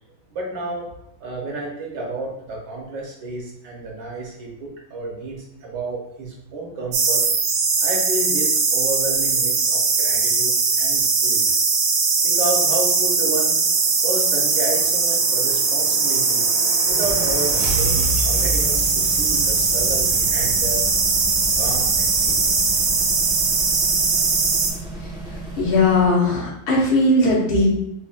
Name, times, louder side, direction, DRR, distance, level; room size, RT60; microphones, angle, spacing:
voice 1, 0.3-0.8 1.2-7.2 7.8-11.4 12.2-13.6 14.0-16.4 16.9-20.8 21.6-22.5, right 2 dB, 70° right, -2 dB, 1.4 m, -31 dB
sound 1, 6.9-24.7, right 4 dB, 85° right, 1.5 m, -20 dB
sound 2, 12.8-19.5, right 3 dB, 50° right, 0.8 m, -33 dB
sound 3, 16.8-26.2, equal, 5° right, 0.6 m, -33 dB
voice 2, 25.0-27.8, left 2 dB, 80° left, -4 dB, 1.8 m, -19 dB
5.5 x 2.2 x 2.4 m, 0.82 s
omnidirectional pair, 2.2 m